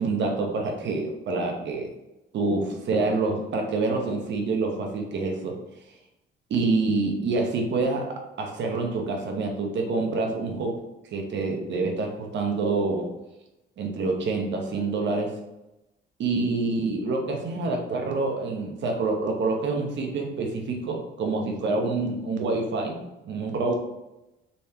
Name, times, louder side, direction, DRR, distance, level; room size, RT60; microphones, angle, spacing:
voice 1, 0.0-1.9 2.3-5.6 6.5-10.8 11.1-13.1 13.8-15.4 16.2-23.8, right 3 dB, 65° right, 2 dB, 1.0 m, -27 dB
4.1 x 3.4 x 2.9 m, 0.95 s
cardioid pair, 90°, 20 cm